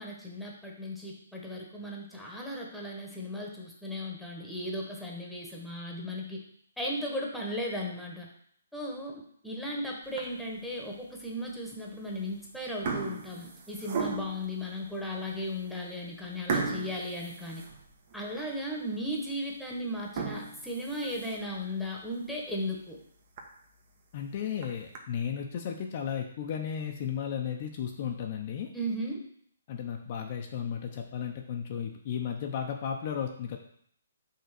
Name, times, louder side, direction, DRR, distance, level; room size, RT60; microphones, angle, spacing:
voice 1, 0.0-6.4 6.8-8.3 8.7-17.6 18.1-23.0 28.7-29.2, equal, ahead, -2 dB, 1.3 m, -36 dB
sound 1, 10.0-10.6 11.1-11.3 12.1-12.4 12.6-14.5 15.1-15.2 15.6-15.7 16.5-18.2 18.7-18.8 19.2-19.3 20.0-21.6 22.0-22.1 22.5-22.6 23.0-23.1 23.4-23.5 24.4-25.0, right 4 dB, 45° right, 1.1 m, -36 dB
voice 2, 24.1-28.7 29.7-33.6, left 8 dB, 40° left, 2 dB, 0.7 m, -34 dB
5.6 x 3.7 x 6.0 m, 0.64 s
hypercardioid pair, 145°, 0 cm